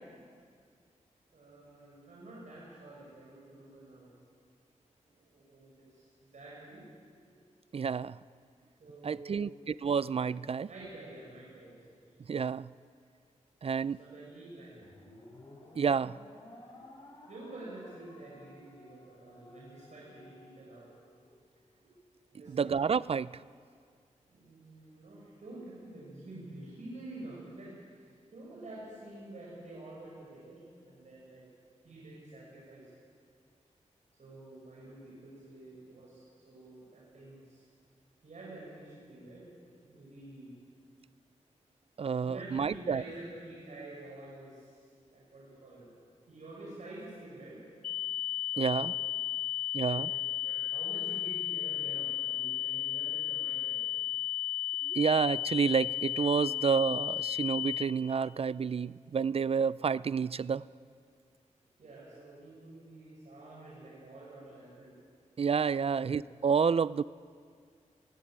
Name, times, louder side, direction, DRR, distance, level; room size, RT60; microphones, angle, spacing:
voice 1, 1.3-4.1 5.1-6.8 8.8-9.5 10.7-11.9 13.9-14.8 17.3-20.9 22.3-22.7 24.3-27.9 28.3-31.4 31.8-32.9 34.2-37.6 38.2-39.5 39.9-40.5 42.2-44.8 45.1-45.9 46.3-47.7 48.0-48.1 48.5-48.9 49.6-53.8 61.8-64.9 65.8-66.2, right 2 dB, 70° right, -6 dB, 6.2 m, -48 dB
voice 2, 7.7-8.2 9.0-10.7 12.3-12.7 13.6-14.0 15.8-16.2 22.5-23.4 42.0-43.0 48.6-48.9 49.7-50.1 54.9-60.7 65.4-67.0, right 6 dB, 50° right, 19 dB, 0.4 m, -29 dB
sound 1, 14.8-21.3, left 1 dB, 40° left, 6.5 m, -55 dB
sound 2, 47.8-57.8, left 15 dB, 70° left, 1.3 m, -34 dB
21.5 x 15.5 x 8.8 m, 2.2 s
cardioid pair, 70°, 13 cm